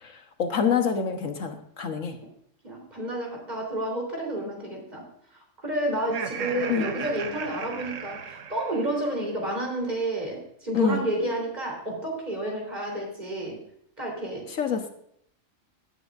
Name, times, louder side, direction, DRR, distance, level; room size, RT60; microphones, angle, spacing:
voice 1, 0.0-2.2 6.7-6.9 10.7-11.1 14.6-14.9, left 6 dB, 75° left, 6 dB, 1.5 m, -26 dB
voice 2, 2.6-5.0 5.6-13.6 14.0-14.5, right 1 dB, 30° right, -1 dB, 4.1 m, -30 dB
Laughter, 6.0-9.2, right 6 dB, 70° right, 1.3 m, -36 dB
17.5 x 9.2 x 2.6 m, 0.72 s
omnidirectional pair, 1.4 m